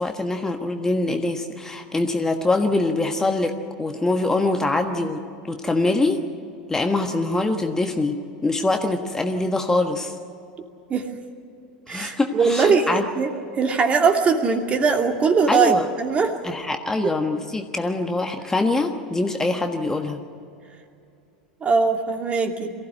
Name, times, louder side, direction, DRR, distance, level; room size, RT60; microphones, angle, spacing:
voice 1, 0.0-6.2 6.7-8.2 8.4-10.1 11.9-13.0 15.5-15.8 16.4-20.2, left 2 dB, 10° left, 4 dB, 1.4 m, -24 dB
voice 2, 11.9-16.3 17.0-17.1 21.6-22.7, right 5 dB, 30° right, 4 dB, 2.4 m, -21 dB
23.5 x 15.5 x 9.9 m, 2.6 s
figure-of-eight pair, 85°, 4 cm